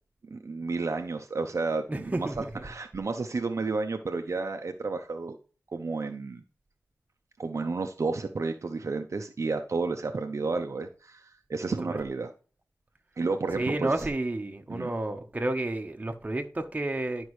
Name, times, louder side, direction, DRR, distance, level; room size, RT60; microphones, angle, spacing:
voice 1, 0.3-5.4 5.7-6.4 7.4-12.3 13.2-13.9 14.7-14.9, right 3 dB, 60° right, 0.6 m, -31 dB
voice 2, 1.9-2.6 11.8-12.0 13.5-17.3, right 2 dB, 25° right, 1.1 m, -31 dB
11.5 x 5.2 x 3.2 m
wide cardioid pair, 80°, 6 cm